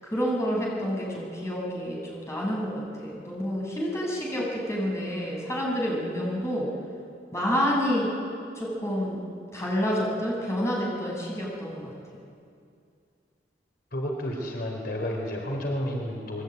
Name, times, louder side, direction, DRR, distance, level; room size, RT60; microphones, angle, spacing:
voice 1, 0.0-6.7 7.3-8.1 8.6-9.2 9.5-11.9, equal, 15° left, -3 dB, 7.4 m, -28 dB
voice 2, 13.9-16.4, equal, 60° left, 1 dB, 4.1 m, -31 dB
27.5 x 22.5 x 9.5 m, 2.4 s
head